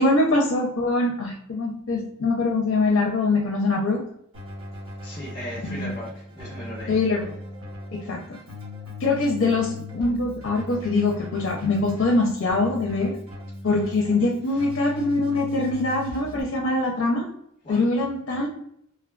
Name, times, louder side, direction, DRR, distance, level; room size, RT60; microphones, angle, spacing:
voice 1, 0.0-4.0 5.6-5.9 6.9-7.2 7.9-8.4 9.0-13.1 13.6-17.3 17.7-18.5, left 2 dB, 65° left, 0 dB, 0.5 m, -23 dB
Keyboard (musical), 4.3-16.4, left 2 dB, 80° right, 1.0 m, -39 dB
voice 2, 5.0-7.0 14.5-14.6 17.6-17.9, equal, 30° left, -6 dB, 1.0 m, -37 dB
3.2 x 2.2 x 2.4 m, 0.72 s
head